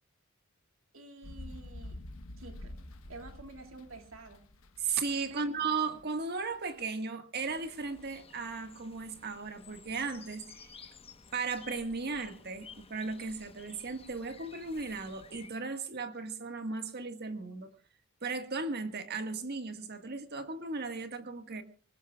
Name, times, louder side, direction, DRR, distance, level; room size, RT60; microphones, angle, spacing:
voice 1, 0.9-2.0 2.4-2.8 3.1-4.4 5.3-5.6, right 2 dB, 75° right, 2.5 m, -49 dB
sound 1, 1.2-6.8, left 1 dB, 80° left, 1.2 m, -48 dB
voice 2, 4.8-10.9 11.3-17.7 18.2-21.6, right 4 dB, 50° right, 1.7 m, -36 dB
sound 2, 7.4-15.5, left 5 dB, 30° left, 1.1 m, -54 dB
25.5 x 19.5 x 2.4 m
head